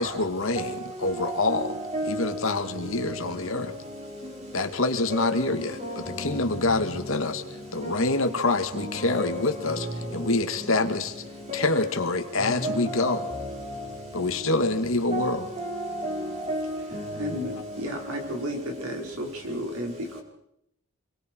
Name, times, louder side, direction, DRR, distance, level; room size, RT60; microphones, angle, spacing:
voice 1, 0.0-1.8 2.1-3.7 4.5-5.8 6.2-7.4 7.7-9.9 10.1-11.1 11.5-13.2 14.1-15.4, left 2 dB, 70° left, 2.2 m, -26 dB
voice 2, 1.2-2.3 2.8-3.1 5.1-5.5 5.8-6.0 7.8-8.0 8.7-9.9 11.5-11.8 12.4-13.8 15.1-17.4, equal, 30° right, 5.3 m, -33 dB
voice 3, 17.1-20.2, equal, 90° right, 5.1 m, -33 dB
28.0 x 22.5 x 4.7 m
head